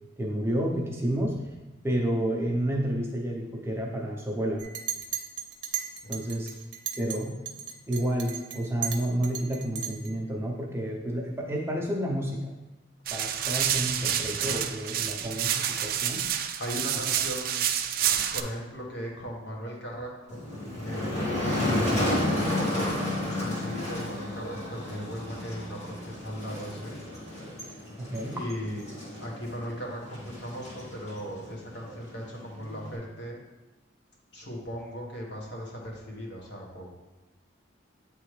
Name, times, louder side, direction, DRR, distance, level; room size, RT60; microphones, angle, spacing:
voice 1, 0.2-1.4 1.8-4.6 6.1-6.5 7.0-7.4 7.9-12.5 13.1-16.2 28.0-28.4, right 1 dB, 15° right, -2 dB, 0.6 m, -30 dB
Chink clink, 4.6-7.2 7.5-10.1, right 9 dB, 70° right, 0.7 m, -36 dB
sound 1, 13.1-18.4, right 10 dB, 50° right, 0.3 m, -28 dB
voice 2, 13.9-14.4 16.6-17.6 18.3-20.4 20.8-22.9 23.2-27.1 28.3-28.8 29.2-33.4 34.3-36.9, equal, 65° left, -2 dB, 1.4 m, -38 dB
Motor vehicle (road), 20.3-33.0, left 1 dB, 35° left, 1.6 m, -32 dB
8.8 x 3.3 x 3.2 m, 1.1 s
head